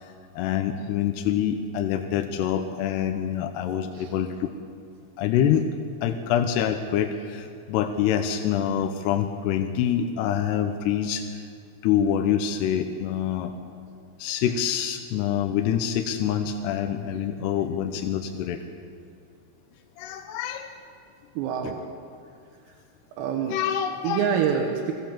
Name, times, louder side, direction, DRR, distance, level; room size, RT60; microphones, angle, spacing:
voice 1, 0.0-4.5 5.2-5.7 6.0-11.4 11.8-13.5 14.2-18.6 20.0-20.7 21.6-21.7 23.5-24.3, left 9 dB, 80° left, 6 dB, 2.4 m, -26 dB
voice 2, 21.4-21.8 23.2-23.6 24.0-24.9, right 8 dB, 85° right, 2 dB, 4.0 m, -26 dB
22.5 x 17.0 x 7.4 m, 2.2 s
omnidirectional pair, 5.9 m